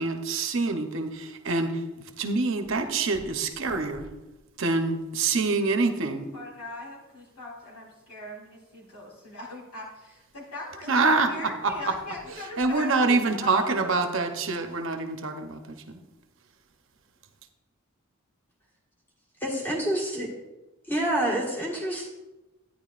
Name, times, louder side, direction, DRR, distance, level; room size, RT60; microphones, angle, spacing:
voice 1, 0.0-1.8 2.2-4.1 4.6-6.3 10.9-11.9 12.6-16.0, right 3 dB, 60° right, 7 dB, 0.8 m, -26 dB
voice 2, 6.3-13.9, left 1 dB, 85° left, -4 dB, 3.7 m, -40 dB
voice 3, 19.4-20.3 20.9-22.1, right 1 dB, 10° left, -3 dB, 1.6 m, -27 dB
12.0 x 9.9 x 2.5 m, 1.0 s
head